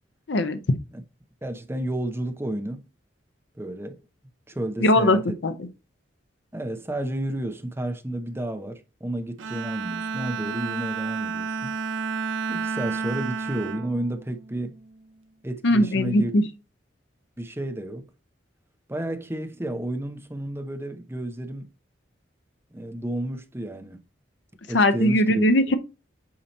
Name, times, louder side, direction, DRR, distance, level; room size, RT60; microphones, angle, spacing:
voice 1, 0.3-0.6 4.8-5.2 5.4-5.5 15.6-16.4 24.7-25.8, left 1 dB, 70° left, 0.7 m, -19 dB
voice 2, 1.4-2.9 3.6-4.0 4.5-5.4 6.5-11.8 12.5-14.8 15.4-16.3 17.4-18.1 18.9-21.7 22.7-24.0 24.7-25.5, right 1 dB, 15° right, 0.6 m, -31 dB
Bowed string instrument, 9.4-14.9, right 5 dB, 90° right, 0.6 m, -31 dB
8.6 x 2.9 x 4.0 m
head